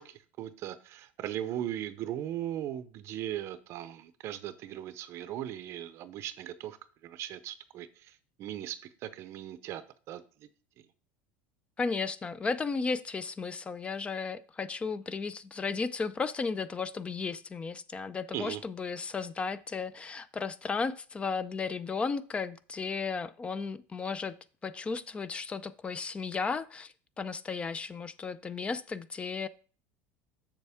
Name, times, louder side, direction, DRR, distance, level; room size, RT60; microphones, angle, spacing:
voice 1, 0.0-6.8 7.0-8.1 8.4-10.2 18.3-18.6, right 11 dB, 45° right, 0.6 m, -38 dB
voice 2, 11.8-24.4 24.6-29.5, left 4 dB, 20° left, 0.5 m, -34 dB
7.4 x 6.8 x 3.5 m
supercardioid pair, 130°, 6 cm